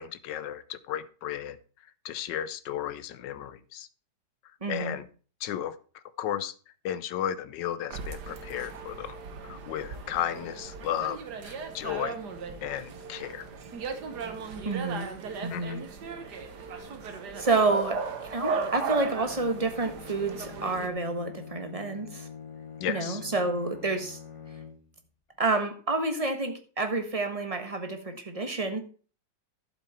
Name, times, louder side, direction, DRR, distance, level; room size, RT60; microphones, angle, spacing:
voice 1, 0.0-1.6 2.0-3.9 4.7-5.0 5.4-5.7 6.2-6.5 6.8-9.2 9.5-11.2 11.4-12.2 12.6-13.5 15.5-15.8 22.8-23.2, left 10 dB, 75° left, 15 dB, 1.4 m, -34 dB
voice 2, 4.6-5.0 14.6-15.1 15.4-15.8 16.3-16.4 17.4-22.3 22.9-24.2 25.4-28.8, right 3 dB, 20° right, 6 dB, 1.3 m, -29 dB
sound 1, 7.9-20.9, right 5 dB, 65° right, 1.8 m, -37 dB
Bowed string instrument, 19.1-25.1, left 7 dB, 25° left, 0.7 m, -46 dB
11.5 x 7.8 x 4.3 m, 0.39 s
omnidirectional pair, 2.0 m